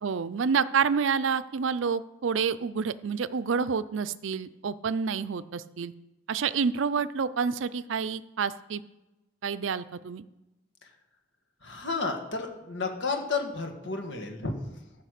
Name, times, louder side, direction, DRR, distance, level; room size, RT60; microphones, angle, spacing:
voice 1, 0.0-5.9 6.3-8.8 9.4-10.2, right 6 dB, 90° right, 15 dB, 0.5 m, -28 dB
voice 2, 11.6-14.5, left 4 dB, 70° left, 4 dB, 1.7 m, -32 dB
14.0 x 5.8 x 6.6 m, 1.0 s
head